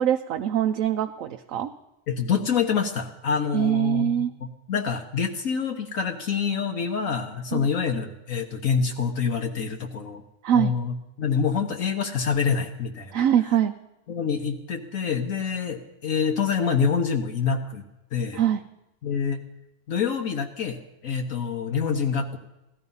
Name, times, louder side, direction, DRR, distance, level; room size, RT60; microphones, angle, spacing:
voice 1, 0.0-1.7 3.5-4.3 7.5-7.7 10.4-10.7 13.1-13.7 18.3-18.6, right 10 dB, 75° right, 6 dB, 1.0 m, -23 dB
voice 2, 2.1-10.2 10.5-13.2 14.1-17.8 18.1-18.4 19.0-19.4 19.9-22.4, left 6 dB, 75° left, 3 dB, 1.5 m, -26 dB
16.5 x 13.0 x 5.5 m, 0.95 s
omnidirectional pair, 1.4 m